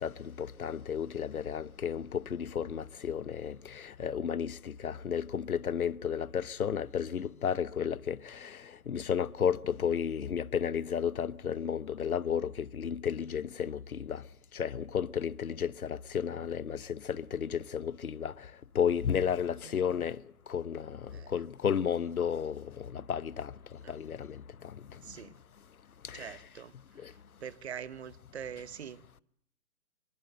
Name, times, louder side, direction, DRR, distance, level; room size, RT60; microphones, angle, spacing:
voice 1, 0.0-14.2 14.5-18.3 18.7-20.2 20.5-23.5 23.9-24.7 26.0-26.4 27.0-27.1, left 8 dB, 75° left, 0.9 m, -33 dB
voice 2, 25.0-25.3 26.1-26.7 27.4-29.2, right 8 dB, 45° right, 1.1 m, -43 dB
24.0 x 23.0 x 7.7 m
figure-of-eight pair, 140°, 44 cm